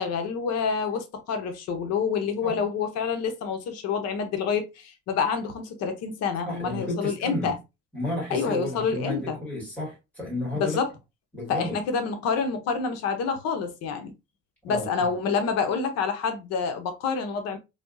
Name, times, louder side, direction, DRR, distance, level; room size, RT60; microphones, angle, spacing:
voice 1, 0.0-7.6 8.3-9.4 10.5-10.9 11.5-14.1 14.6-17.6, left 5 dB, 60° left, 0.8 m, -27 dB
voice 2, 6.4-7.6 7.9-10.8 11.3-11.8 14.7-15.1, left 1 dB, 5° left, 2.1 m, -32 dB
3.4 x 2.7 x 2.5 m
cardioid pair, 150°, 29 cm